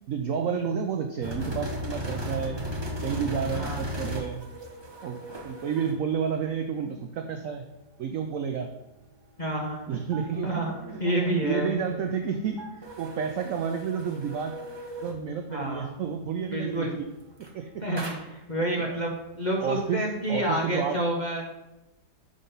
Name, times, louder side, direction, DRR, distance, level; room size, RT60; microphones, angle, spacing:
voice 1, 0.1-2.6 3.0-4.4 5.0-7.6 8.0-8.7 9.9-10.5 11.4-12.7 13.0-14.5 15.0-16.9 17.5-17.8 18.7-19.0 19.6-21.0, right 7 dB, 75° right, 6 dB, 0.7 m, -30 dB
sound 1, 1.2-6.0 10.1-11.5 12.6-15.2 17.3-17.6 18.0-18.4, equal, 25° right, 0.6 m, -36 dB
voice 2, 3.5-3.8 9.4-10.0 10.4-10.7 11.0-11.7 15.5-15.9 16.5-17.0 17.8-21.4, right 1 dB, 35° left, -2 dB, 0.7 m, -29 dB
5.4 x 4.9 x 5.5 m, 0.97 s
omnidirectional pair, 2.0 m